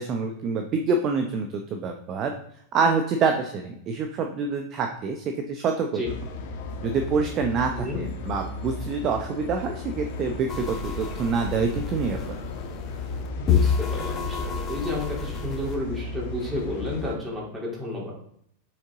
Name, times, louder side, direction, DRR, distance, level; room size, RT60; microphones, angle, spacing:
voice 1, 0.0-2.3 2.7-6.0 6.8-12.4, right 4 dB, 35° right, 4 dB, 0.8 m, -26 dB
sound 1, 6.0-17.2, left 3 dB, 50° left, 1.3 m, -35 dB
sound 2, 10.5-15.8, left 6 dB, 25° left, 1.4 m, -29 dB
voice 2, 13.4-18.1, left 1 dB, 15° right, -4 dB, 3.5 m, -31 dB
7.5 x 6.6 x 3.9 m, 0.69 s
figure-of-eight pair, 90°, 0 cm